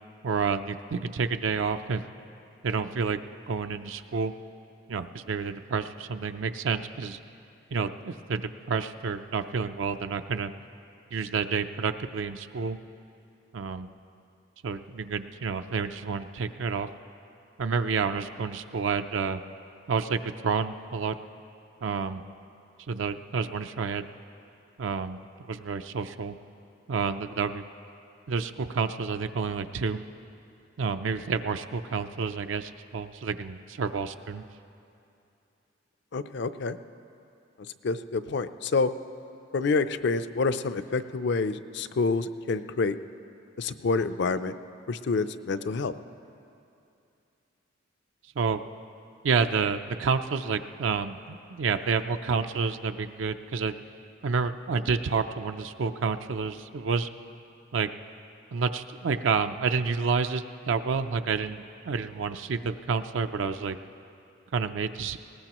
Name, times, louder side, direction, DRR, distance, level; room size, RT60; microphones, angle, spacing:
voice 1, 0.2-2.0 2.6-3.2 3.5-4.3 4.9-7.2 7.7-10.5 11.1-12.8 13.5-13.9 14.6-16.9 17.6-19.4 19.9-21.2 21.8-22.2 22.9-24.1 24.8-25.2 25.5-26.4 26.9-27.6 28.3-30.0 30.8-34.4 48.4-48.6 49.2-53.8 54.2-57.1 57.7-57.9 58.5-63.8 64.5-65.2, right 5 dB, 75° right, 9 dB, 0.5 m, -29 dB
voice 2, 36.1-36.8 37.8-38.9 39.5-43.0 43.6-44.5 44.9-45.9, left 4 dB, 65° left, 12 dB, 0.5 m, -27 dB
20.0 x 18.5 x 3.0 m, 2.6 s
head